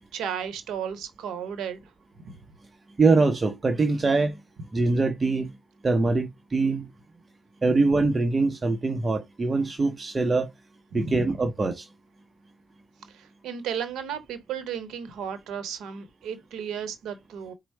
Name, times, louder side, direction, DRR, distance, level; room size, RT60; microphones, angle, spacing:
voice 1, 0.1-1.9 2.2-2.3 10.9-11.2 13.1-17.5, right 7 dB, 70° right, 0.9 m, -34 dB
voice 2, 3.0-4.4 4.7-5.5 5.8-6.9 7.6-10.5 10.9-11.9, right 3 dB, 35° right, 0.8 m, -23 dB
4.4 x 2.0 x 4.3 m
hypercardioid pair, 45°, 0 cm